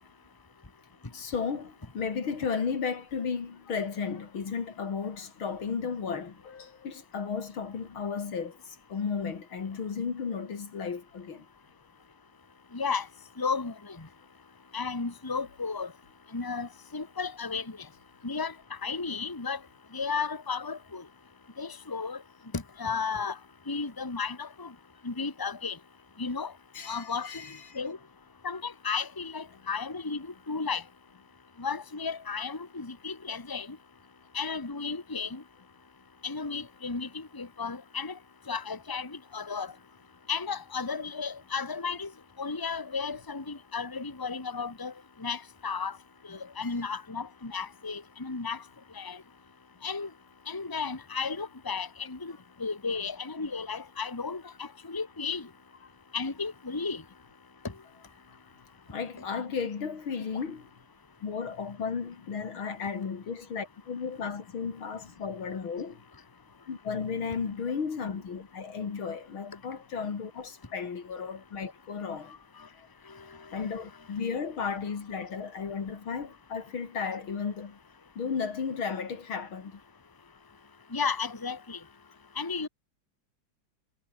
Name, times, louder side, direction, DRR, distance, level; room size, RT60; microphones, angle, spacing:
voice 1, 1.1-11.5 26.7-27.8 46.6-46.7 58.3-58.4 58.9-60.7 61.2-66.0 66.7-72.4 72.8-72.9 73.5-77.8 78.2-79.8, left 6 dB, 85° left, 3.5 m, -34 dB
voice 2, 12.7-13.1 13.4-14.1 14.7-15.9 16.3-17.8 18.2-19.6 19.9-21.0 21.6-22.2 22.5-23.4 23.7-24.7 25.0-25.8 26.2-26.5 26.9-27.3 27.7-28.0 28.4-30.8 31.6-33.8 34.3-35.4 36.2-38.2 38.5-39.7 40.3-42.1 42.4-44.9 45.2-46.0 46.3-48.6 48.9-49.2 49.8-50.1 50.5-52.3 52.6-55.5 56.1-57.0 59.2-59.3 73.5-73.7 80.9-81.8 82.3-82.7, left 5 dB, 10° left, 1.6 m, -34 dB
omnidirectional pair, 2.2 m